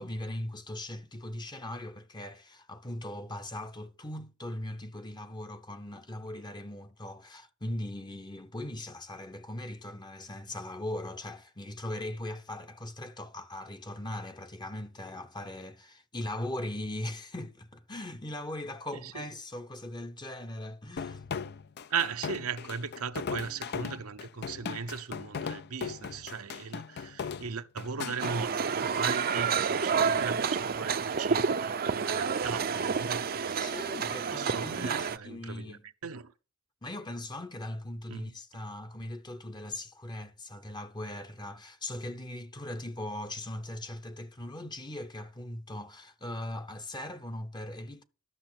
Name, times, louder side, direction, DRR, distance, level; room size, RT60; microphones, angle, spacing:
voice 1, 0.0-21.2 33.6-35.8 36.8-48.0, left 1 dB, 20° left, 0.8 m, -39 dB
voice 2, 18.9-19.3 21.9-33.7 34.3-36.3 38.1-38.3, right 5 dB, 75° right, 0.8 m, -38 dB
sound 1, 21.0-28.4, left 6 dB, 50° left, 0.5 m, -38 dB
sound 2, 28.2-35.2, right 6 dB, 45° right, 0.6 m, -29 dB
12.5 x 6.6 x 6.0 m
head